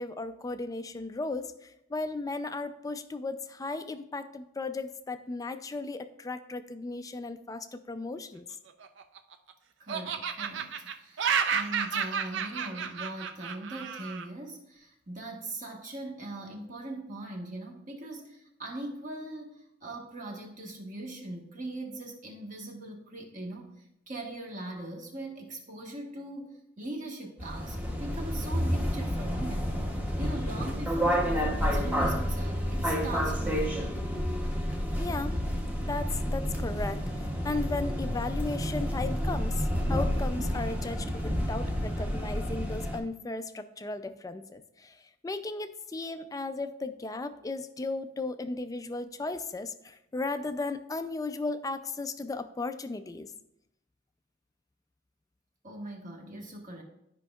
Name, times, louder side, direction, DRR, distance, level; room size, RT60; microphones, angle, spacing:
voice 1, 0.0-8.5 35.0-35.4 35.8-53.3, left 3 dB, 20° left, 10 dB, 0.4 m, -36 dB
Laughter, 8.7-9.5 9.9-14.3, right 7 dB, 65° right, 0.5 m, -31 dB
voice 2, 9.8-29.8 30.2-33.9 55.6-56.8, right 2 dB, 40° right, 0 dB, 1.4 m, -40 dB
sound 1, 27.4-43.0, equal, 10° right, 0.8 m, -30 dB
13.0 x 5.2 x 2.3 m, 0.83 s
head